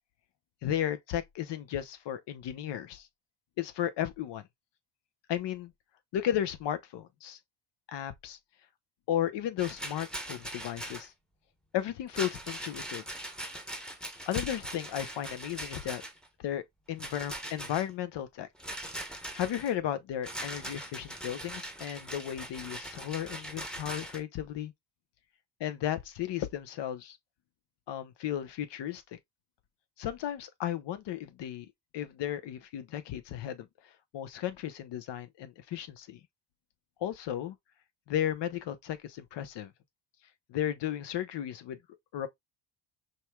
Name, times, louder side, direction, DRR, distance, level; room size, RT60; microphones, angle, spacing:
voice 1, 0.6-3.1 3.6-4.5 5.3-5.7 6.1-7.4 7.9-8.4 9.1-11.1 11.7-13.0 14.3-16.0 16.4-18.5 19.3-24.7 25.6-27.2 27.9-29.2 30.0-31.7 31.9-36.2 37.0-37.6 38.1-39.7 40.5-41.8 42.1-42.3, left 11 dB, 60° left, 0.9 m, -34 dB
Rattle, 9.6-11.1 12.1-16.3 17.0-17.9 18.6-19.7 20.2-24.2, right 1 dB, ahead, 0.9 m, -41 dB
5.3 x 3.2 x 2.3 m
cardioid pair, 105°, 49 cm